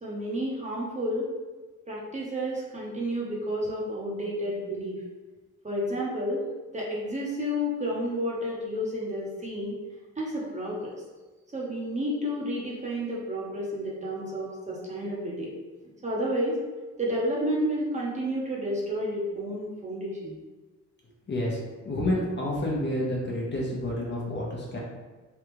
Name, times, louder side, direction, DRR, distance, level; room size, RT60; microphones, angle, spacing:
voice 1, 0.0-1.3 1.9-5.0 5.6-6.4 6.7-9.8 10.2-10.9 11.5-15.5 16.0-16.6 17.0-20.4, equal, 25° right, -4 dB, 0.9 m, -31 dB
voice 2, 21.3-21.6 21.8-24.8, left 1 dB, 35° left, -4 dB, 0.9 m, -29 dB
3.5 x 2.3 x 3.0 m, 1.3 s
cardioid pair, 90°, 30 cm